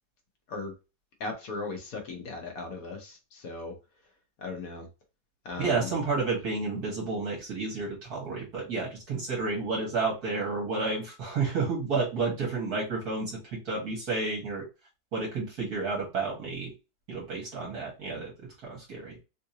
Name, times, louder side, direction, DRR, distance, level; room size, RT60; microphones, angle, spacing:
voice 1, 1.2-3.8 4.4-4.9 5.4-5.9, left 3 dB, 60° left, 1.2 m, -37 dB
voice 2, 5.6-14.6 15.1-16.7 17.1-18.3 18.7-19.2, right 4 dB, 60° right, 1.7 m, -31 dB
3.7 x 2.6 x 2.7 m
omnidirectional pair, 1.9 m